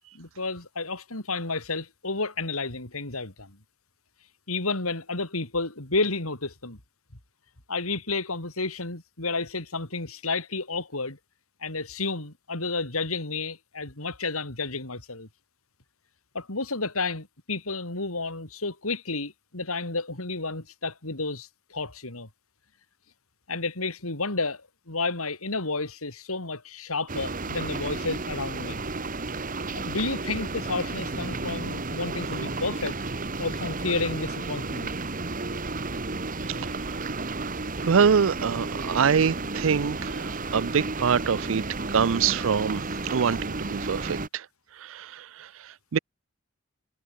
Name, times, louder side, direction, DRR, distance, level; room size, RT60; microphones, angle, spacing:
voice 1, 0.1-3.6 4.5-6.8 7.7-11.2 11.6-15.3 16.3-22.3 23.5-28.8 29.7-33.0 33.4-34.9, left 3 dB, 90° left, 4.5 m, -31 dB
sound 1, 27.1-44.3, right 3 dB, 40° right, 1.6 m, -32 dB
voice 2, 36.6-37.0 37.8-44.5 44.8-45.5 45.9-46.0, right 6 dB, 65° right, 0.5 m, -25 dB
head